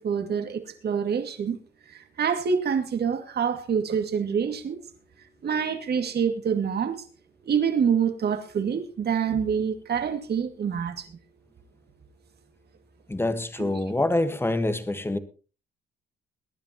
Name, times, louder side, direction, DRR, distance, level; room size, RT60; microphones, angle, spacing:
voice 1, 0.0-1.6 1.9-4.8 5.4-7.0 7.4-11.1 13.6-13.7, right 7 dB, 55° right, 2.3 m, -26 dB
voice 2, 13.1-15.2, left 2 dB, 10° left, 1.4 m, -26 dB
22.0 x 10.5 x 2.9 m
cardioid pair, 90°, 20 cm